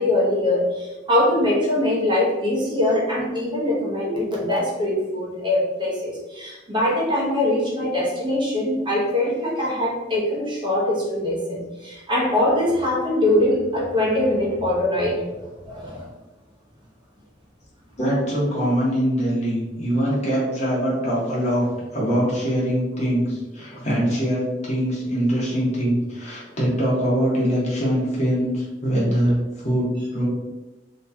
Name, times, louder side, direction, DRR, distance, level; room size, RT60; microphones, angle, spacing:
voice 1, 0.0-15.4 15.6-16.1, left 1 dB, 25° right, -4 dB, 0.9 m, -22 dB
voice 2, 18.0-21.7 21.9-30.3, equal, 40° left, -5 dB, 1.2 m, -23 dB
3.1 x 2.8 x 3.4 m, 1.1 s
head